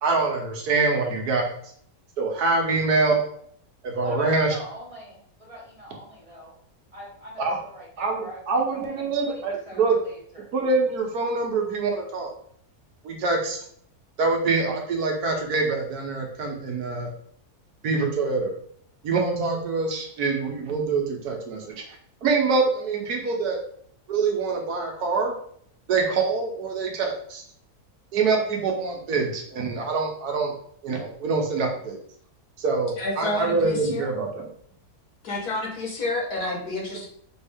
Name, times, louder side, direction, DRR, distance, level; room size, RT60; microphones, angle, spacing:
voice 1, 0.0-1.5 2.2-3.3 3.8-4.5 7.4-7.6 8.0-10.0 10.5-12.3 13.0-13.6 14.2-17.1 17.8-18.5 19.0-21.8 22.2-23.6 24.1-25.3 25.9-27.4 28.1-30.5 30.8-32.0 32.6-34.5 36.9-37.1, right 4 dB, 75° right, 1 dB, 1.4 m, -25 dB
voice 2, 4.0-6.5 6.9-10.5, equal, 25° right, -4 dB, 1.2 m, -42 dB
voice 3, 33.0-34.1 35.2-37.1, left 2 dB, 75° left, -1 dB, 1.8 m, -29 dB
5.1 x 2.7 x 3.5 m, 0.63 s
omnidirectional pair, 1.7 m